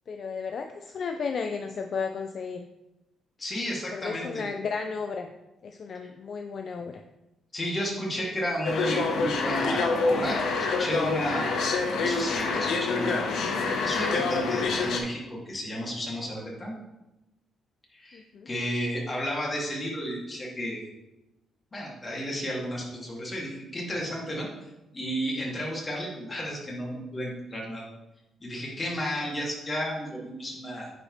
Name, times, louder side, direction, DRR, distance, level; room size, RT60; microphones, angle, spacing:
voice 1, 0.1-2.7 3.9-5.3 5.6-7.0 18.1-18.5, left 5 dB, 55° left, 5 dB, 0.5 m, -33 dB
voice 2, 3.4-4.5 7.5-11.5 11.9-13.3 13.8-16.7 17.9-20.9 21.7-24.5 24.9-27.8 28.4-30.9, equal, 30° left, -3 dB, 2.5 m, -32 dB
sound 1, 8.6-15.0, left 4 dB, 70° left, 0.9 m, -27 dB
9.6 x 5.0 x 3.3 m, 0.97 s
cardioid pair, 90°, 0 cm